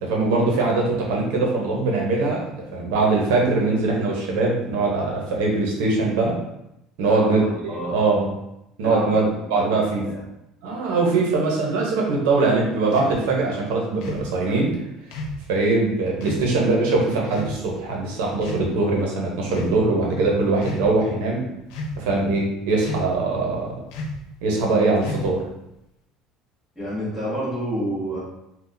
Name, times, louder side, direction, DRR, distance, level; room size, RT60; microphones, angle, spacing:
voice 1, 0.0-6.4 7.0-8.3 8.8-10.0 10.6-14.7 15.5-21.4 22.0-23.7 24.4-25.4, right 3 dB, 90° right, -1 dB, 0.9 m, -22 dB
voice 2, 7.1-7.9 8.8-10.2 26.7-28.2, equal, ahead, -10 dB, 1.4 m, -29 dB
sound 1, 12.9-13.2 14.0-14.3 15.1-15.4 16.2-16.5 17.3-17.6 18.4-18.9 19.5-19.8 20.5-20.9 21.7-22.1 22.8-23.2 23.9-24.3 25.0-25.5, left 2 dB, 75° left, 0.5 m, -32 dB
3.9 x 2.4 x 2.6 m, 0.84 s
cardioid pair, 125°, 0 cm